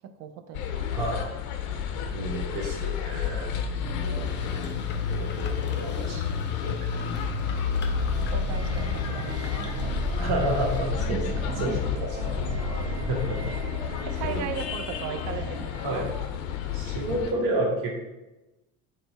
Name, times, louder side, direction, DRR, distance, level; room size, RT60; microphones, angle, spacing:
voice 1, 0.2-1.4 3.8-4.4 8.3-10.1 11.0-11.8 14.0-16.1, right 8 dB, 35° right, 8 dB, 0.4 m, -38 dB
sound 1, 0.5-17.3, left 7 dB, 65° left, 0.6 m, -31 dB
voice 2, 0.9-1.3 2.1-3.5 4.0-4.3 4.6-4.8 5.1-6.7 8.7-9.2 10.1-11.2 11.6-11.9 12.2-12.5 12.8-13.4 14.3-14.4 15.8-16.1 16.7-18.0, right 1 dB, 60° right, -1 dB, 1.2 m, -31 dB
sound 2, 4.0-10.8, left 5 dB, 25° left, 0.6 m, -46 dB
sound 3, 7.4-16.4, right 2 dB, 20° right, 1.0 m, -35 dB
4.1 x 2.2 x 3.9 m, 1.0 s
hypercardioid pair, 65°, 44 cm